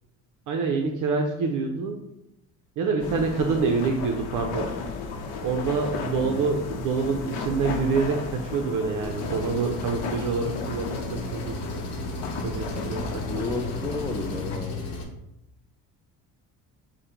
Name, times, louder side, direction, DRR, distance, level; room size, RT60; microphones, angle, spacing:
voice 1, 0.5-2.0 2.8-4.7 5.4-11.9 12.4-13.5, right 4 dB, 55° right, 4 dB, 0.6 m, -27 dB
sound 1, 3.0-14.6, left 4 dB, 85° left, 0.7 m, -34 dB
Engine, 9.0-15.0, left 2 dB, 45° left, 0.9 m, -35 dB
voice 2, 13.3-14.8, left 3 dB, 10° left, 5 dB, 0.3 m, -32 dB
4.9 x 2.2 x 4.3 m, 0.85 s
cardioid pair, 115°, 37 cm